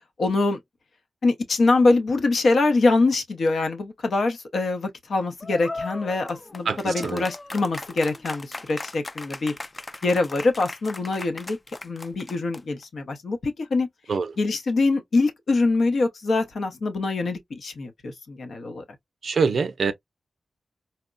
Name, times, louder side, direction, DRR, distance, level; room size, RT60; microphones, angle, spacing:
voice 1, 0.2-0.6 1.2-9.5 10.0-11.6 11.8-13.9 14.4-18.8, left 3 dB, 75° left, 0.8 m, -24 dB
sound 1, 5.4-12.8, left 2 dB, 25° left, 0.3 m, -38 dB
voice 2, 6.7-7.2 14.1-14.4 19.2-19.9, right 5 dB, 75° right, 0.4 m, -24 dB
4.2 x 2.1 x 2.4 m
wide cardioid pair, 105°, 0 cm